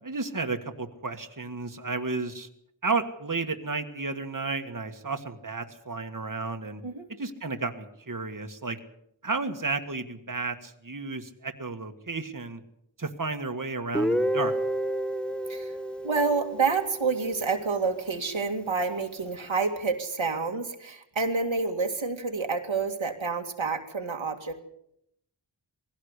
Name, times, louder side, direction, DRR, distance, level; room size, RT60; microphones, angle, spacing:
voice 1, 0.0-2.5 2.8-6.8 7.2-8.8 9.2-12.6 13.0-14.6, right 3 dB, 45° right, 6 dB, 1.7 m, -32 dB
Guitar, 13.9-17.8, equal, ahead, 0.8 m, -30 dB
voice 2, 16.0-24.6, right 4 dB, 90° right, 4 dB, 2.3 m, -28 dB
20.0 x 16.5 x 8.2 m, 0.75 s
wide cardioid pair, 50°, 46 cm